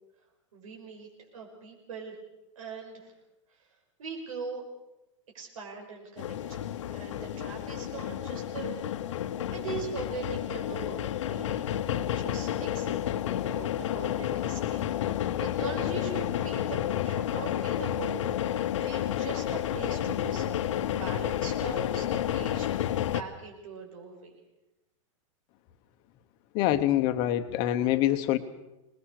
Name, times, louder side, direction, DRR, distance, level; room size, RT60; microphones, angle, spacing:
voice 1, 0.5-1.1 1.3-2.2 2.6-3.1 4.0-4.6 5.3-6.6 6.9-9.0 9.5-13.0 13.4-14.8 15.4-18.5 18.8-20.6 20.8-22.7 23.1-24.3, right 5 dB, 85° right, 0 dB, 5.7 m, -41 dB
sound 1, 6.2-23.2, left 11 dB, 65° left, 1.0 m, -31 dB
voice 2, 26.5-28.4, left 13 dB, 25° left, 9 dB, 0.9 m, -25 dB
24.5 x 20.5 x 6.6 m, 0.95 s
supercardioid pair, 180°, 17 cm